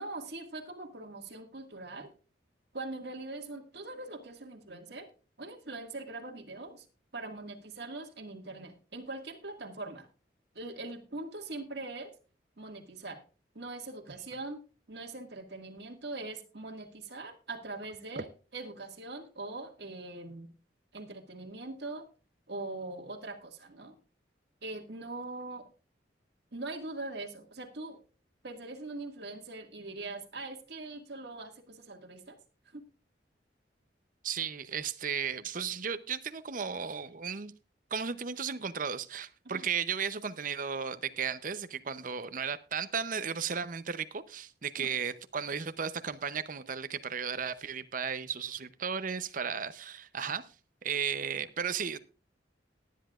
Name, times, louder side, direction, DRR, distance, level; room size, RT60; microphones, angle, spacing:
voice 1, 0.0-2.1 2.7-5.1 5.4-6.9 7.1-10.1 10.5-12.1 12.6-13.2 13.6-14.6 14.9-18.3 18.5-20.5 20.9-22.1 22.5-23.9 24.6-25.7 26.5-28.0 28.4-32.4 32.7-32.8 39.5-39.7 44.8-44.9, right 2 dB, 65° right, 1.9 m, -42 dB
voice 2, 34.2-37.5 37.9-50.5 50.8-52.0, right 6 dB, 45° right, 0.7 m, -35 dB
18.0 x 10.0 x 2.4 m
head